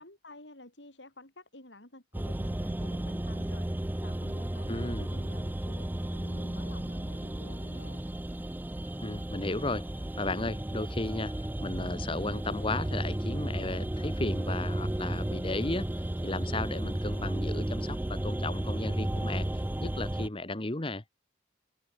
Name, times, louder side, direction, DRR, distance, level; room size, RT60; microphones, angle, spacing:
voice 1, 0.0-8.0, left 1 dB, 70° left, 6.5 m, -51 dB
sound 1, 2.1-20.3, right 1 dB, 10° right, 0.4 m, -33 dB
voice 2, 4.7-5.1 9.0-9.9 10.2-11.3 11.6-15.9 16.2-21.0, left 2 dB, 30° left, 1.4 m, -34 dB
head